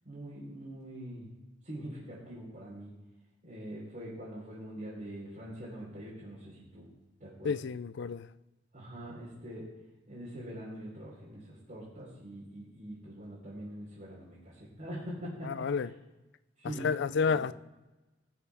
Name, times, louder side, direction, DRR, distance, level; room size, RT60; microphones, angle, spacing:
voice 1, 0.0-1.3 1.6-2.9 3.4-6.9 7.2-7.6 8.7-9.7 10.1-15.7 16.6-17.0 17.2-17.4, right 1 dB, 40° right, 3.7 m, -43 dB
voice 2, 7.4-8.3 15.4-15.9 16.6-17.5, left 5 dB, 65° left, 0.4 m, -30 dB
18.0 x 6.8 x 3.5 m
head